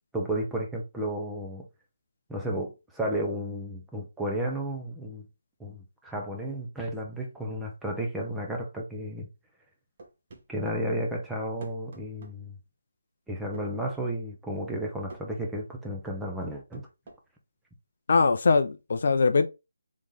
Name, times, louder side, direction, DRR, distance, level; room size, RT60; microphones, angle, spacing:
voice 1, 0.1-1.7 2.3-5.2 5.6-9.3 10.5-12.5 13.3-16.9, right 1 dB, 5° right, 0.7 m, -33 dB
sound 1, 10.0-10.8 11.6-12.4 13.5-14.0 15.1-15.3 16.4-17.2, right 2 dB, 40° right, 1.2 m, -46 dB
voice 2, 18.1-19.5, left 4 dB, 55° left, 0.4 m, -22 dB
3.8 x 3.6 x 3.2 m
figure-of-eight pair, 165°, 0 cm